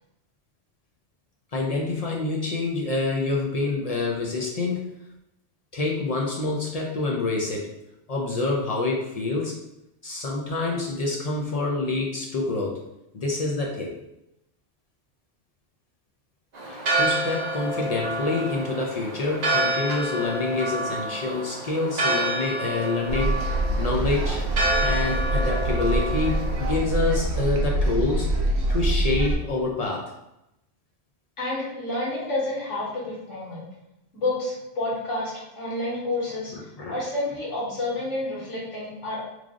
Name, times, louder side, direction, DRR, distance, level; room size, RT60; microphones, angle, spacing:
voice 1, 1.5-4.9 5.7-7.7 8.1-9.5 10.0-12.8 13.1-13.9 16.6-24.4 24.8-28.3 28.7-30.1 36.5-37.0, left 3 dB, 60° left, -2 dB, 0.4 m, -27 dB
Church bell, 16.5-26.7, right 1 dB, 45° right, 0.7 m, -28 dB
sound 1, 23.1-29.4, right 1 dB, 70° right, 0.9 m, -25 dB
voice 2, 31.4-33.6 34.1-36.5 36.9-39.2, left 2 dB, 85° left, -6 dB, 1.7 m, -29 dB
3.3 x 2.4 x 3.6 m, 0.86 s
omnidirectional pair, 1.2 m